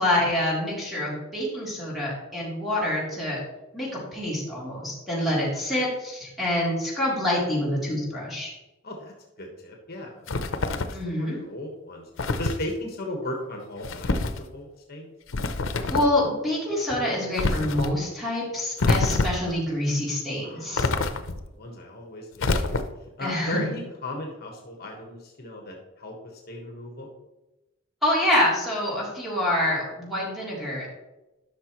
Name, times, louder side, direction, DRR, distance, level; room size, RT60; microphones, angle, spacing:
voice 1, 0.0-3.4 3.7-8.5 10.9-11.4 15.9-20.9 23.2-23.6 28.0-30.9, left 1 dB, ahead, -6 dB, 3.2 m, -26 dB
voice 2, 9.4-10.2 10.7-10.8 11.1-12.0 12.4-15.1 20.4-20.9 21.6-22.8 23.2-26.1 26.5-27.1, left 1 dB, 55° left, 1 dB, 1.4 m, -36 dB
sound 1, 10.3-11.0 12.2-12.6 13.8-14.4 15.3-16.2 17.4-17.9 18.8-19.5 20.8-21.5 22.4-23.1, left 3 dB, 80° left, 0.7 m, -26 dB
12.5 x 6.0 x 3.1 m, 1.0 s
head